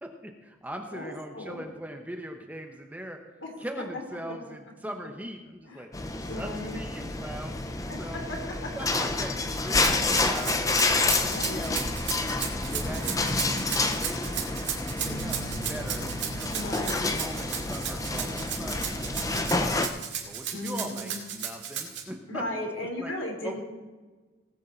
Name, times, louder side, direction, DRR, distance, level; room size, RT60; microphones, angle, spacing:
voice 1, 0.0-3.2 3.6-5.9 6.2-7.6 8.0-8.2 8.8-11.8 12.1-13.3 13.8-16.5 16.8-19.8 20.2-22.7 23.0-23.1 23.4-23.6, right 1 dB, 10° right, 4 dB, 0.9 m, -41 dB
voice 2, 0.9-1.6 3.4-3.5 5.6-5.9 6.3-6.8 7.9-8.0 8.3-8.4 11.3-11.8 16.5-17.0 20.5-21.2 22.3-23.6, left 1 dB, 75° left, 1 dB, 3.3 m, -36 dB
sound 1, 5.9-19.9, left 3 dB, 15° left, 0.7 m, -29 dB
Rattle (instrument), 9.7-22.0, right 9 dB, 60° right, 2.3 m, -34 dB
sound 2, 15.0-22.7, right 3 dB, 40° right, 0.9 m, -46 dB
18.5 x 8.2 x 4.4 m, 1.3 s
head